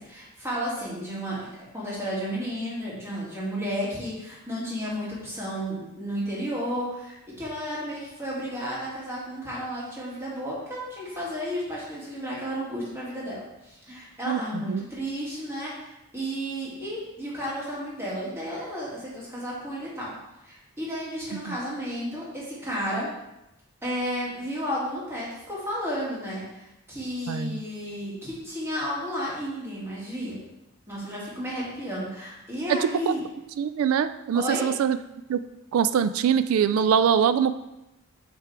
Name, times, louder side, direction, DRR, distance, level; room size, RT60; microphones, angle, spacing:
voice 1, 0.0-20.1 20.4-23.1 23.8-30.4 30.9-33.2 34.3-34.7, equal, 10° right, -6 dB, 1.9 m, -32 dB
voice 2, 14.3-14.8 21.5-21.6 27.3-27.6 32.7-33.2 33.6-35.0 35.3-35.4 35.7-37.5, right 7 dB, 70° right, 13 dB, 0.3 m, -23 dB
6.6 x 3.5 x 4.6 m, 0.91 s
head